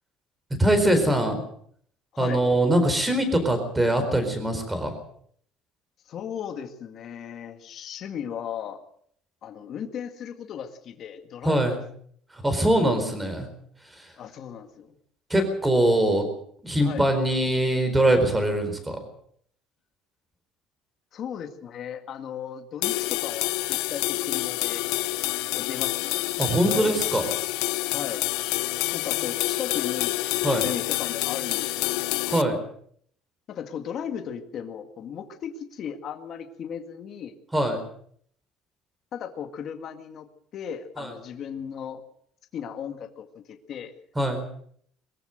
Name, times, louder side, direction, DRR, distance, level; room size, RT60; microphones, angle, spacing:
voice 1, 0.6-1.4 2.2-4.9 11.4-11.8 12.3-13.5 13.8-14.1 15.3-16.3 16.6-19.0 26.4-27.3 30.4-30.7 32.2-32.6 37.5-37.8 41.0-41.1 44.1-44.4, right 1 dB, 10° right, 8 dB, 4.4 m, -23 dB
voice 2, 6.1-8.8 9.4-11.6 14.2-15.0 16.8-17.0 21.1-24.8 25.6-26.3 26.6-27.0 27.9-28.2 28.9-30.2 30.6-32.0 33.5-37.3 39.1-42.0 42.5-43.9, left 8 dB, 40° left, 6 dB, 1.9 m, -36 dB
sound 1, 22.8-32.4, left 20 dB, 85° left, 0.8 m, -27 dB
23.0 x 14.5 x 7.9 m, 0.64 s
cardioid pair, 165°, 0 cm